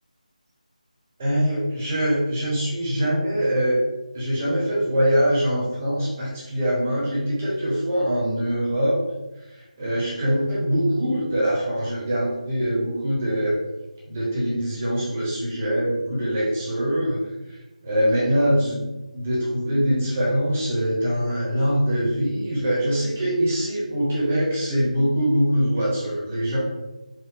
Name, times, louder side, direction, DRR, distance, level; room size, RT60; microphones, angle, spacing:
voice 1, 1.2-3.8 4.1-9.0 9.5-13.5 14.1-17.2 17.5-18.8 19.1-26.6, equal, 15° right, -7 dB, 0.9 m, -23 dB
4.7 x 2.1 x 3.5 m, 1.1 s
figure-of-eight pair, 175°, 4 cm